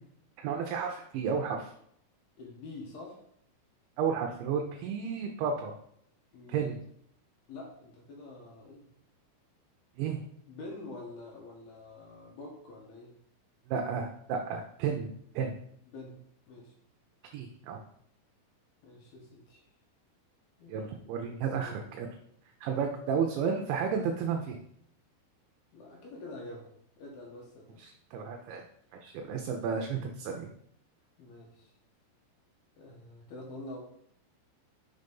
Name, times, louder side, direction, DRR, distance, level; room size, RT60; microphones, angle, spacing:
voice 1, 0.4-1.7 4.0-5.7 6.5-6.8 10.0-10.2 13.7-15.5 17.3-17.8 20.7-22.1 22.6-24.6 27.8-28.6 28.9-30.5, right 6 dB, 80° right, 2 dB, 2.8 m, -32 dB
voice 2, 2.4-3.2 6.3-6.7 7.5-8.9 10.5-13.2 15.9-16.7 18.8-19.7 20.6-20.9 21.4-21.9 22.7-22.8 25.7-27.8 31.2-31.7 32.8-33.8, left 2 dB, 70° left, -1 dB, 2.5 m, -47 dB
6.8 x 4.0 x 5.3 m, 0.69 s
omnidirectional pair, 5.7 m